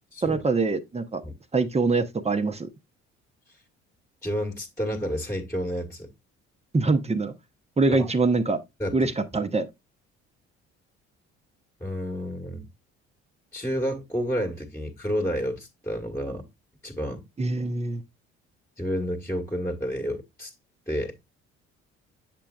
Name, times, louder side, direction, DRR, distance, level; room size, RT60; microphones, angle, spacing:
voice 1, 0.2-1.2 1.5-2.7 6.7-7.3 7.8-8.6 8.9-9.7 17.4-18.0, right 3 dB, 20° right, 0.8 m, -24 dB
voice 2, 4.2-6.1 7.9-8.1 8.8-9.1 11.8-12.7 13.5-16.4 16.8-17.2 18.8-20.5 20.9-21.1, equal, 10° left, 1.4 m, -30 dB
7.4 x 6.7 x 2.3 m
hypercardioid pair, 50°, 35 cm